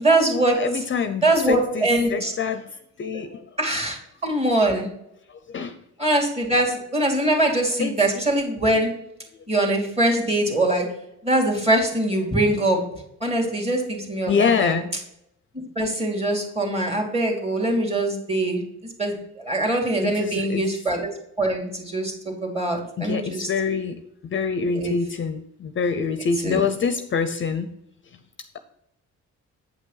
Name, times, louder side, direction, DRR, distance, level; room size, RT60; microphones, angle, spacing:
voice 1, 0.0-0.8 1.2-2.3 3.1-3.2 3.6-4.9 6.0-8.9 9.5-10.9 11.2-12.8 13.2-14.7 15.8-18.6 19.0-21.1 21.4-23.5 24.7-25.0 26.4-26.6, right 1 dB, 20° right, 2 dB, 2.3 m, -23 dB
voice 2, 0.6-2.7 3.0-3.4 5.5-5.8 7.8-7.9 14.3-14.9 20.0-20.7 23.0-27.7, left 5 dB, 40° left, 10 dB, 0.6 m, -25 dB
8.3 x 5.3 x 3.9 m, 0.79 s
cardioid pair, 90°, 30 cm